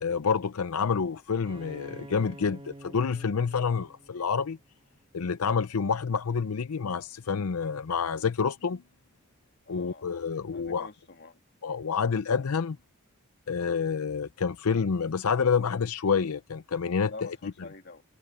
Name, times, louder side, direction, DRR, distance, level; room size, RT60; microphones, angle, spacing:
voice 1, 0.0-4.6 5.1-8.8 9.7-10.9 11.6-12.8 13.5-17.3, left 6 dB, 85° left, 0.6 m, -28 dB
Bowed string instrument, 1.4-5.1, right 1 dB, 25° right, 2.1 m, -48 dB
voice 2, 9.7-10.1 10.5-11.4 17.1-18.0, left 3 dB, 50° left, 2.5 m, -46 dB
head